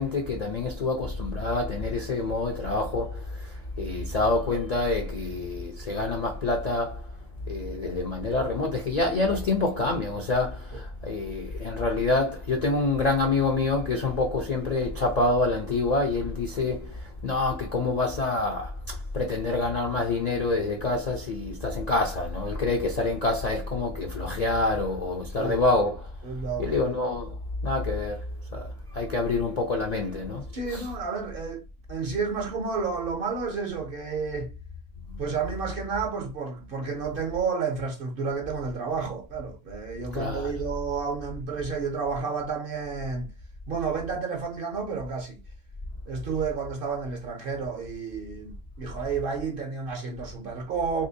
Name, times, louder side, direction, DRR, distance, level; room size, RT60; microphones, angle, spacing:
voice 1, 0.0-7.1 7.5-26.1 26.6-27.4 27.6-28.3 28.5-30.4 30.7-30.9 35.1-35.2 40.1-40.5, left 3 dB, 55° left, 0.4 m, -27 dB
voice 2, 25.4-25.7 26.2-27.0 30.5-31.6 31.9-34.5 35.2-43.3 43.7-45.4 46.1-51.1, right 5 dB, 55° right, 0.7 m, -31 dB
3.4 x 2.7 x 2.6 m
omnidirectional pair, 1.3 m